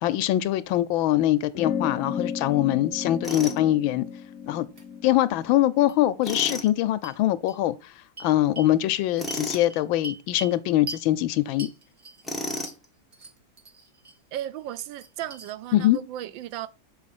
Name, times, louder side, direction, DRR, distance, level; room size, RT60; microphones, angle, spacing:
voice 1, 0.0-4.0 4.5-4.7 5.0-7.7 8.2-11.7 15.7-16.0, left 14 dB, 85° left, 1.4 m, -23 dB
sound 1, 1.5-6.4, left 7 dB, 60° left, 0.9 m, -34 dB
sound 2, 2.9-3.1 3.4-3.5 4.8-4.9 5.9-6.0 6.3-6.4 7.0-7.2 7.5-7.6 8.2-8.7 9.3-10.6 10.9-11.1 11.6-12.9 13.1-14.2 14.6-15.5, right 3 dB, 35° right, 0.8 m, -41 dB
Tools, 3.2-3.6 6.2-6.7 9.2-9.7 12.2-12.8, left 1 dB, ahead, 1.1 m, -32 dB
voice 2, 14.3-16.7, right 12 dB, 80° right, 1.3 m, -35 dB
6.4 x 4.9 x 4.1 m
omnidirectional pair, 2.1 m